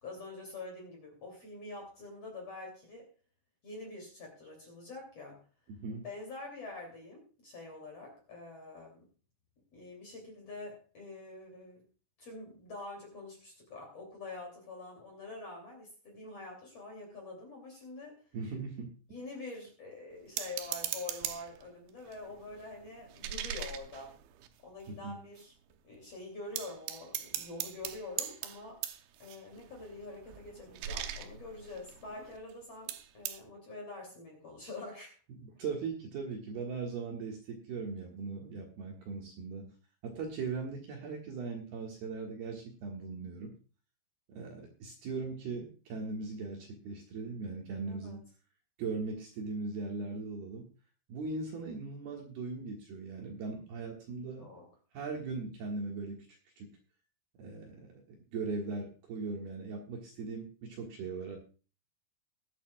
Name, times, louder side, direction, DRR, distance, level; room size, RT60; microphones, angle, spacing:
voice 1, 0.0-3.1 3.6-5.4 6.0-9.0 9.7-11.8 12.2-18.2 19.1-24.1 24.6-25.5 25.8-28.8 29.2-35.2 47.9-48.2 54.4-54.7, left 2 dB, 40° left, 0 dB, 3.0 m, -46 dB
voice 2, 5.7-6.0 18.3-18.9 24.9-25.2 35.3-39.7 40.0-43.5 44.3-48.2 48.8-50.7 51.1-54.5 54.9-56.7 57.4-61.4, right 4 dB, 60° right, 0 dB, 3.0 m, -39 dB
sound 1, 20.4-21.6 22.1-24.9 25.4-25.5 25.7-26.1 26.6-32.5 32.9-33.4, right 10 dB, 75° right, 2.8 m, -41 dB
21.5 x 8.6 x 2.3 m, 0.37 s
omnidirectional pair, 5.8 m